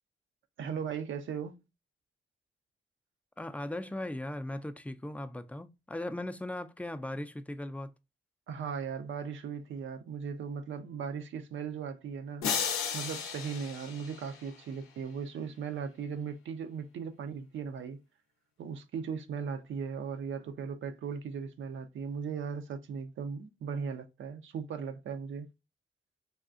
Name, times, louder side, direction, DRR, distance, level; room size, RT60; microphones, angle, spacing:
voice 1, 0.6-1.6 8.5-12.7 12.9-18.0 18.6-25.5, right 6 dB, 70° right, 0.5 m, -38 dB
voice 2, 3.4-7.9, left 1 dB, 5° left, 0.4 m, -38 dB
sound 1, 12.4-14.8, left 6 dB, 85° left, 0.6 m, -35 dB
3.5 x 2.3 x 2.5 m
supercardioid pair, 45°, 21 cm